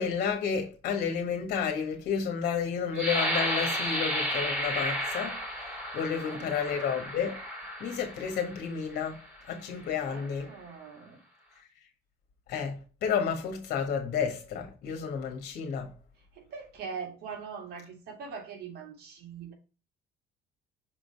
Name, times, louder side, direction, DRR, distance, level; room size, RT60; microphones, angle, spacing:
voice 1, 0.0-5.4 5.9-7.4 7.8-9.2 9.5-10.5 12.5-15.9, left 7 dB, 65° left, 1.6 m, -31 dB
sound 1, 2.9-8.6 9.2-9.4 9.9-10.3, equal, 10° right, 2.7 m, -32 dB
voice 2, 6.0-6.5 10.1-11.2 16.3-19.5, right 6 dB, 70° right, 2.1 m, -42 dB
6.1 x 3.9 x 4.7 m
cardioid pair, 110°, 17 cm